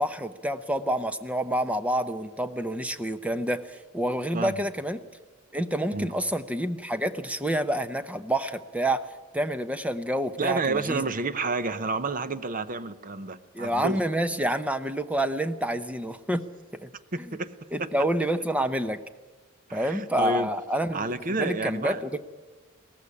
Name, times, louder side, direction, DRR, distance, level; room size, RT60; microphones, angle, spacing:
voice 1, 0.0-5.0 5.5-9.1 9.3-11.0 13.5-16.4 16.7-16.9 17.7-19.0 19.7-21.1 21.4-22.2, right 1 dB, 5° right, 11 dB, 0.7 m, -28 dB
voice 2, 4.3-4.7 5.9-6.1 10.4-14.0 17.1-17.9 19.7-20.5 20.9-22.0, right 3 dB, 40° right, 14 dB, 0.7 m, -30 dB
18.0 x 15.0 x 9.8 m, 1.3 s
head